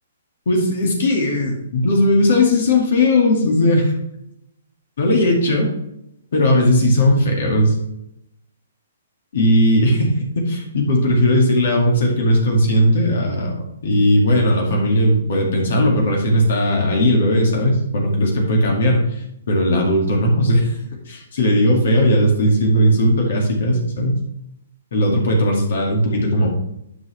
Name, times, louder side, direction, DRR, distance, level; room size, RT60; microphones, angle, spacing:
voice 1, 0.5-3.9 5.0-5.7 6.3-7.7 9.3-10.1 10.4-19.0 19.5-20.8 21.1-24.2 24.9-26.5, left 1 dB, 65° left, 0 dB, 2.2 m, -17 dB
9.5 x 5.9 x 3.3 m, 0.80 s
hypercardioid pair, 135°, 0 cm